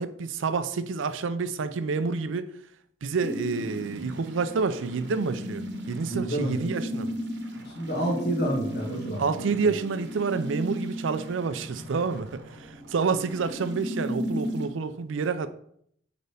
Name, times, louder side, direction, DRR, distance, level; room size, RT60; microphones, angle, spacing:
voice 1, 0.0-2.5 3.0-7.1 9.2-15.5, right 4 dB, 80° right, 12 dB, 0.5 m, -28 dB
sound 1, 3.2-14.7, equal, 60° right, 1.0 m, -35 dB
voice 2, 6.1-6.5 7.6-9.5, right 1 dB, 55° left, -1 dB, 1.8 m, -29 dB
6.6 x 5.1 x 3.4 m, 0.68 s
head